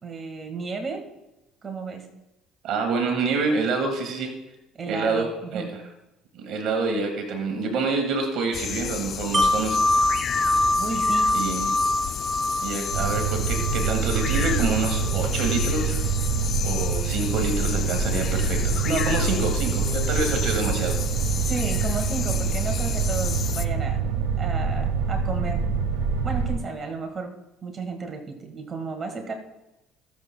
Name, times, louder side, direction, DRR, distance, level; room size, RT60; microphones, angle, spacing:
voice 1, 0.0-1.0 1.6-2.1 4.8-5.8 10.8-11.3 19.3-19.5 21.4-24.1 24.4-25.6 26.2-27.3 27.6-29.3, right 4 dB, 35° right, 4 dB, 1.7 m, -33 dB
voice 2, 2.6-4.3 4.9-5.7 6.3-10.1 11.3-11.7 12.6-16.0 16.6-21.0, right 3 dB, 65° right, 4 dB, 1.6 m, -27 dB
sound 1, 8.5-23.7, left 8 dB, 50° left, 0.5 m, -32 dB
Wind chime, 9.3-15.1 15.5-15.7, left 1 dB, 10° right, 1.7 m, -25 dB
sound 2, 12.9-26.6, right 6 dB, 80° right, 1.5 m, -25 dB
19.0 x 7.3 x 2.2 m, 0.97 s
supercardioid pair, 80°, 0 cm